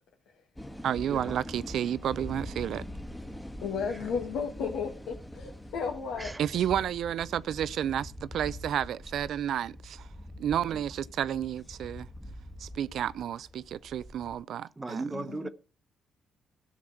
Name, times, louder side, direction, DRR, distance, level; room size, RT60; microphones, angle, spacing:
sound 1, 0.6-14.4, equal, 10° left, 1.4 m, -44 dB
voice 1, 0.8-2.8 6.4-10.1 10.4-12.1 12.6-15.0, right 10 dB, 70° right, 0.5 m, -31 dB
voice 2, 3.6-6.3 15.1-15.5, left 6 dB, 85° left, 2.1 m, -34 dB
voice 3, 14.8-15.5, right 2 dB, 20° right, 1.0 m, -38 dB
13.0 x 6.1 x 7.7 m
cardioid pair, 75°, 0 cm